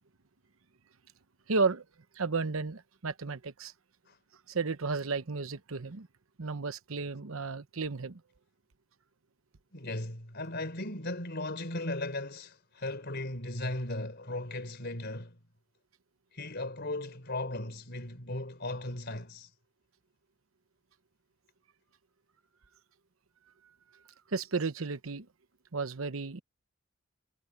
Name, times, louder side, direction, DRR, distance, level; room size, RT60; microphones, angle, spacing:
voice 1, 1.5-1.8 2.2-3.7 4.5-6.1 6.4-8.2 24.3-25.3 25.7-26.4, right 4 dB, 75° right, 0.9 m, -33 dB
voice 2, 9.7-15.4 16.3-19.5, left 2 dB, 55° left, 4.1 m, -37 dB
head